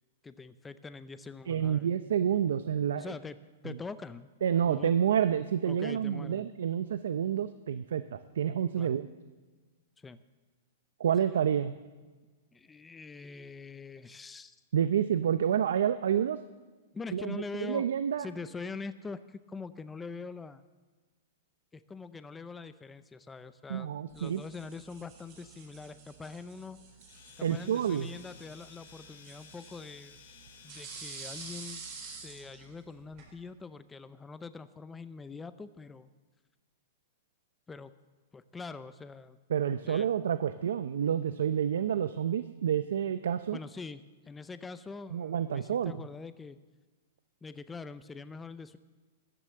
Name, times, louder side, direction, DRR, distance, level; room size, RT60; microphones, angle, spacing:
voice 1, 0.2-1.9 3.0-3.4 3.6-4.3 4.7-4.9 5.7-6.5 8.8-9.0 10.0-10.2 12.5-14.6 16.9-17.9 18.2-20.6 21.7-26.8 27.4-30.2 30.6-31.8 32.2-36.1 37.7-37.9 38.3-39.4 39.8-40.1 43.5-46.6 47.4-48.8, left 4 dB, 10° left, 13 dB, 0.5 m, -44 dB
voice 2, 1.5-3.1 3.7-3.8 4.4-9.1 11.0-11.7 14.7-16.4 17.1-18.3 23.7-24.4 27.4-28.2 39.5-43.6 45.1-45.9, right 9 dB, 80° right, 12 dB, 0.6 m, -29 dB
sound 1, 24.1-33.3, right 5 dB, 40° right, 4.6 m, -49 dB
Domestic sounds home sounds, 27.0-31.9, left 7 dB, 70° left, 2.4 m, -55 dB
13.5 x 10.0 x 7.6 m, 1.3 s
hypercardioid pair, 150°, 0 cm